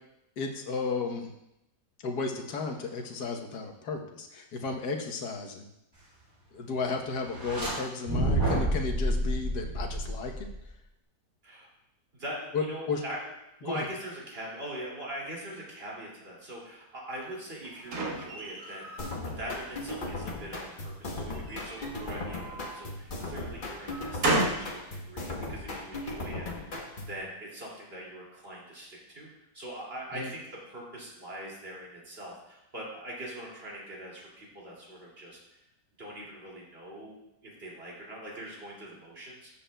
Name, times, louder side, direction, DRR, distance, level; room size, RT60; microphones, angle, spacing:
voice 1, 0.4-1.3 2.0-5.7 6.5-10.5 12.5-13.0 13.6-13.9 30.1-30.3, left 4 dB, 70° left, 2 dB, 1.6 m, -34 dB
sound 1, 7.3-7.7 8.1-10.6, right 1 dB, 15° right, 2.7 m, -29 dB
voice 2, 12.1-13.2 13.6-26.8 27.1-29.3 29.5-35.4 36.0-39.5, right 1 dB, 35° right, -4 dB, 2.7 m, -42 dB
sound 2, 17.2-19.1 19.6-20.3 21.3-22.8 23.4-24.7, right 2 dB, 70° right, 2.0 m, -33 dB
sound 3, 19.0-27.2, left 2 dB, 35° left, 1.0 m, -37 dB
13.5 x 7.3 x 2.3 m, 0.84 s
omnidirectional pair, 1.8 m